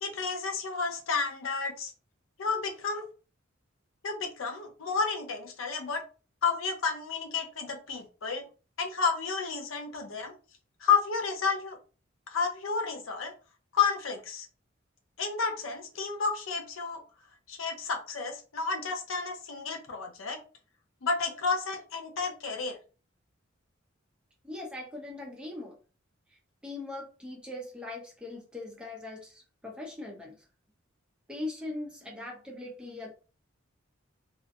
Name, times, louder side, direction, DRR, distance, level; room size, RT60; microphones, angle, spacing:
voice 1, 0.0-1.9 2.4-3.1 4.0-6.0 6.4-8.4 8.8-10.3 10.8-11.8 12.3-13.3 13.7-14.5 15.2-17.0 17.5-20.4 21.0-22.8, left 5 dB, 80° left, 4 dB, 0.6 m, -31 dB
voice 2, 24.4-25.8 26.3-30.3 31.3-33.1, left 2 dB, 5° right, -2 dB, 0.6 m, -40 dB
2.4 x 2.1 x 2.6 m, 0.35 s
head